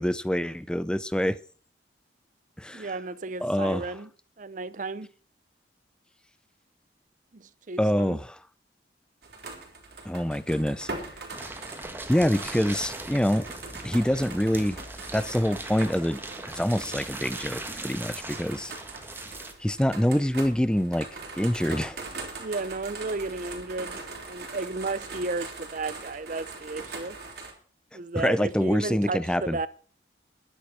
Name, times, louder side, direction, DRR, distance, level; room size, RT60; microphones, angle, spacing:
voice 1, 0.0-1.4 2.6-2.9 3.4-3.9 7.8-8.4 10.0-10.9 12.1-13.5 13.8-14.8 15.1-16.2 16.5-18.7 19.6-21.1 21.4-22.1 28.2-29.6, equal, 5° left, 0.5 m, -25 dB
voice 2, 2.7-4.1 4.4-5.1 7.3-8.2 22.4-27.2 27.9-29.7, right 3 dB, 45° right, 0.7 m, -33 dB
sound 1, 9.2-27.5, right 3 dB, 60° right, 3.9 m, -41 dB
sound 2, 11.3-19.5, right 2 dB, 10° right, 1.4 m, -39 dB
11.5 x 10.0 x 6.2 m
head